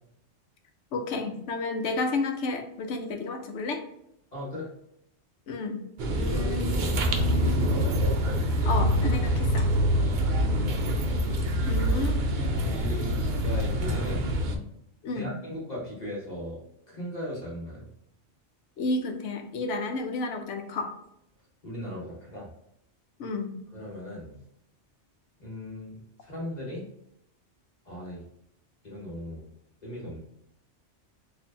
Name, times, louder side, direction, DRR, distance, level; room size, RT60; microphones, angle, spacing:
voice 1, 0.9-3.8 5.5-5.8 6.1-7.7 8.6-9.7 11.7-12.2 15.0-15.3 18.8-20.9 23.2-23.5, left 3 dB, 75° left, 5 dB, 1.0 m, -31 dB
voice 2, 4.3-4.7 9.9-11.1 12.6-14.4 15.1-16.6 16.9-17.9 21.6-22.5 23.7-24.4 25.4-26.0 26.2-26.9 27.8-28.2 28.8-29.5 29.8-30.2, left 1 dB, 35° left, -5 dB, 1.3 m, -38 dB
sound 1, 6.0-14.6, equal, 55° right, 0.6 m, -25 dB
4.3 x 2.7 x 2.6 m, 0.77 s
omnidirectional pair, 1.2 m